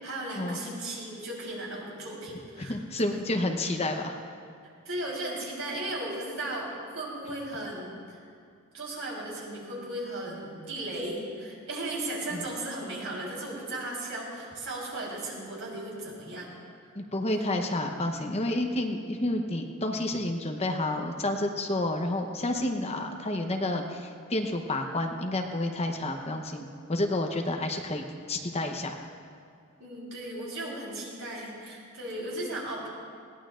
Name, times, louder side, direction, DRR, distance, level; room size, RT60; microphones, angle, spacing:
voice 1, 0.0-3.2 4.8-8.2 8.7-16.5 17.2-17.6 29.8-32.9, right 1 dB, 65° right, -4 dB, 4.0 m, -36 dB
voice 2, 2.6-4.1 12.3-12.4 17.0-29.0, left 1 dB, 30° left, 4 dB, 0.9 m, -30 dB
20.5 x 17.0 x 2.5 m, 2.3 s
head